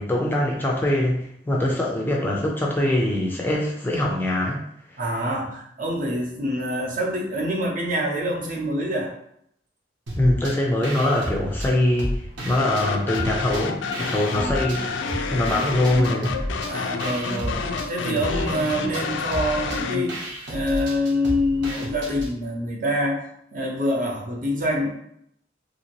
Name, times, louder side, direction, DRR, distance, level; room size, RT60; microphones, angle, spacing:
voice 1, 0.0-4.6 4.9-5.0 10.2-14.9 15.3-16.5, left 1 dB, 10° left, -2 dB, 0.4 m, -23 dB
voice 2, 5.0-9.1 14.4-14.5 16.7-20.1 20.5-23.2 23.5-24.9, equal, 45° right, -1 dB, 0.7 m, -26 dB
sound 1, 10.1-10.6 10.8-12.9 13.1-14.8 15.1-22.3, equal, 75° right, 0.9 m, -32 dB
sound 2, 12.6-20.1, left 4 dB, 75° left, 0.3 m, -29 dB
2.9 x 2.7 x 2.9 m, 0.71 s
head